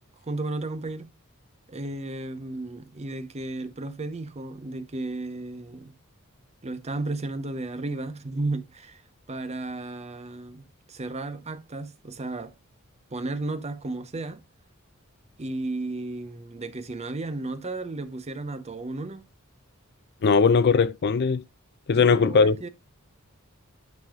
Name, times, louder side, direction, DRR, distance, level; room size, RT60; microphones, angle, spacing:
voice 1, 0.2-1.1 1.7-5.9 6.6-9.0 9.3-12.5 13.1-14.4 15.4-19.3 22.0-22.7, right 2 dB, 30° right, 0.8 m, -34 dB
voice 2, 20.2-21.4 21.9-22.7, left 5 dB, 50° left, 0.5 m, -20 dB
11.5 x 5.5 x 2.4 m
head